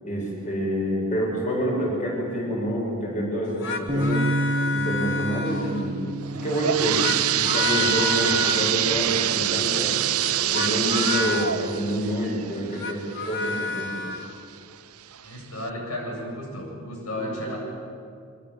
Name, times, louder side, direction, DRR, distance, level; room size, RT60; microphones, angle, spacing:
voice 1, 0.0-4.3 4.7-6.0 6.3-9.9 10.4-14.0 17.4-17.6, equal, 35° left, -2 dB, 8.0 m, -27 dB
sound 1, 3.4-5.9 6.8-8.8 10.4-11.6 12.6-14.3, left 3 dB, 60° left, 2.8 m, -30 dB
Bass guitar, 3.9-10.1, right 1 dB, 25° right, 2.2 m, -31 dB
sound 2, 6.2-13.8 14.3-14.4 15.1-15.2 15.6-15.7, right 12 dB, 85° right, 0.9 m, -25 dB
voice 2, 15.2-17.6, left 1 dB, 75° left, -1 dB, 8.0 m, -33 dB
26.5 x 25.0 x 8.9 m, 2.3 s
head